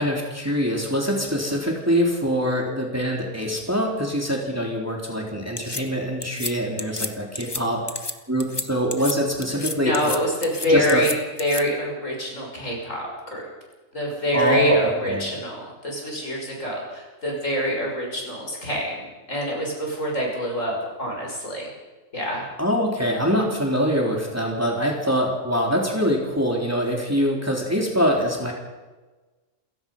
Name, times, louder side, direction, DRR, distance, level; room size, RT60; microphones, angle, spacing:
voice 1, 0.0-7.8 8.3-10.1 10.6-11.1 14.3-15.3 22.6-28.5, equal, 10° right, -1 dB, 3.7 m, -24 dB
sound 1, 5.6-5.8 6.2-6.5 6.8-7.1 7.4-7.6 7.9-8.1 8.4-8.6 8.9-9.2 9.4-10.2 10.4-11.6, left 3 dB, 20° left, 1.1 m, -30 dB
voice 2, 9.8-11.1 11.4-13.4 13.9-21.7 22.1-22.4, equal, 70° left, -1 dB, 6.4 m, -25 dB
28.5 x 16.5 x 5.6 m, 1.2 s
omnidirectional pair, 1.4 m